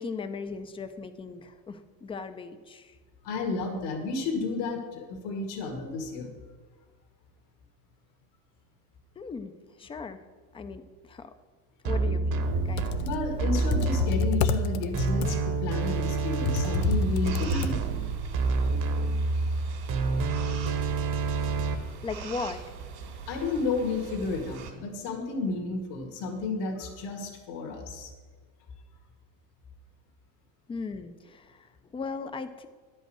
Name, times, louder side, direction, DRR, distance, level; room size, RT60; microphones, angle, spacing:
voice 1, 0.0-3.0 9.2-10.2 10.5-11.3 11.8-13.0 22.0-22.6 30.7-32.7, left 4 dB, 15° left, 10 dB, 0.4 m, -38 dB
voice 2, 3.2-6.4 13.0-17.8 23.3-28.1, left 3 dB, 70° left, 3 dB, 1.9 m, -32 dB
sound 1, 11.8-21.7, right 3 dB, 40° right, 1.0 m, -28 dB
Computer keyboard, 12.6-18.2, left 6 dB, 90° left, 0.7 m, -31 dB
sound 2, 15.8-24.7, right 5 dB, 80° right, 2.5 m, -42 dB
10.0 x 5.4 x 7.6 m, 1.5 s
supercardioid pair, 120°, 48 cm